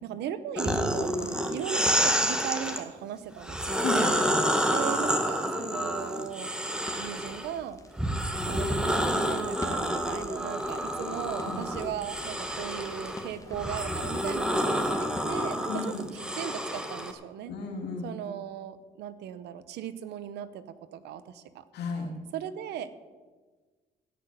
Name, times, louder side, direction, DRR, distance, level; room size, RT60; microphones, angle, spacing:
voice 1, 0.0-1.1 1.5-3.9 4.7-6.5 7.0-7.8 8.5-17.5 18.0-20.6 20.9-21.6 22.3-22.9, right 10 dB, 85° right, 13 dB, 1.0 m, -37 dB
sound 1, 0.6-2.8 3.4-7.5 8.0-17.1, equal, 5° right, 1.9 m, -29 dB
sound 2, 0.7-14.7, right 2 dB, 55° right, 3.9 m, -48 dB
voice 2, 3.8-4.3 11.5-11.6 15.7-16.1 17.5-18.1 21.7-22.1, left 4 dB, 75° left, 2 dB, 2.8 m, -34 dB
Crackle, 6.8-16.0, left 2 dB, 20° left, 2.2 m, -46 dB
17.0 x 6.1 x 9.2 m, 1.4 s
supercardioid pair, 70°, 17 cm